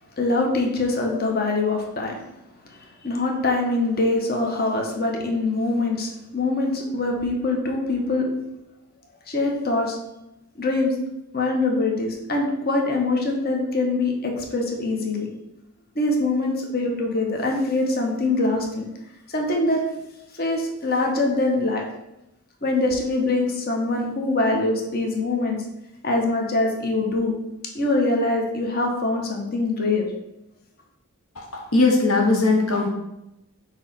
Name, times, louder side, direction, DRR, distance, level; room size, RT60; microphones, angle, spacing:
voice 1, 0.2-2.2 2.7-8.3 9.3-10.0 10.6-10.9 11.3-15.3 15.9-18.8 19.3-19.8 20.4-21.8 22.6-25.6 26.0-27.4 27.7-30.1, left 2 dB, 45° left, 1 dB, 1.0 m, -23 dB
voice 2, 31.4-32.9, left 3 dB, 70° left, 1 dB, 0.9 m, -20 dB
6.2 x 3.0 x 5.8 m, 0.91 s
head